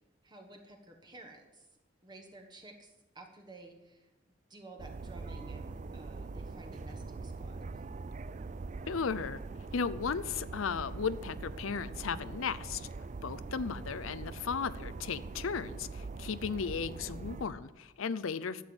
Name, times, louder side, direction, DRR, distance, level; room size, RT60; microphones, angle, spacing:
voice 1, 0.2-1.7 2.0-4.1 4.5-7.8, right 2 dB, 20° right, 2 dB, 1.2 m, -53 dB
sound 1, 4.8-17.5, right 3 dB, 35° right, 0.4 m, -43 dB
voice 2, 8.9-9.4 9.7-12.9 13.2-18.6, left 5 dB, 80° left, 15 dB, 0.6 m, -35 dB
12.5 x 7.8 x 7.9 m, 1.0 s
head